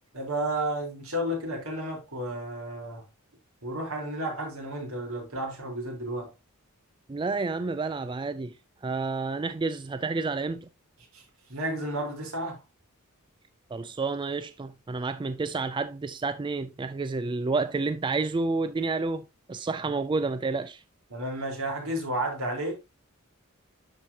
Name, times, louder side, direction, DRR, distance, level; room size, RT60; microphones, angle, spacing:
voice 1, 0.1-3.0 3.6-6.3 11.1-11.2 11.5-12.6 21.1-22.8, right 1 dB, 75° right, 4.0 m, -32 dB
voice 2, 7.1-8.6 8.8-10.7 13.7-20.8, right 3 dB, 20° right, 0.3 m, -30 dB
12.0 x 4.8 x 2.8 m
head